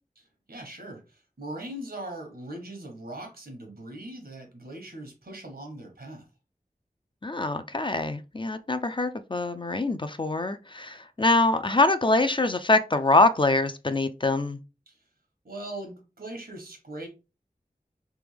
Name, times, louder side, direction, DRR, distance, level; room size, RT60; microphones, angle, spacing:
voice 1, 0.2-6.2 14.9-15.0 15.4-17.1, right 1 dB, 85° right, 1.3 m, -40 dB
voice 2, 7.2-14.6, left 2 dB, 35° left, 0.4 m, -24 dB
3.5 x 3.0 x 3.3 m
wide cardioid pair, 45°, 15 cm